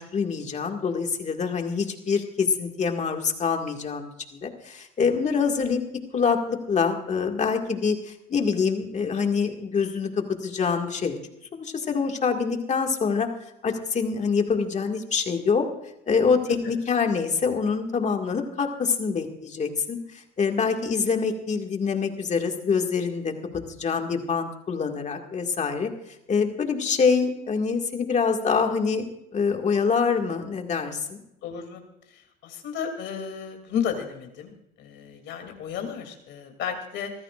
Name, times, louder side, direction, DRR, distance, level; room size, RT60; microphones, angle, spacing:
voice 1, 0.0-5.8 6.1-11.2 11.5-13.3 13.6-15.7 16.1-20.0 20.4-23.3 23.8-25.9 26.3-29.0 29.3-31.2, left 5 dB, 35° left, 4 dB, 2.0 m, -25 dB
voice 2, 31.4-31.8 32.1-34.5 34.8-37.1, left 7 dB, 65° left, 5 dB, 2.8 m, -33 dB
25.5 x 14.5 x 2.5 m, 0.83 s
cardioid pair, 115°, 20 cm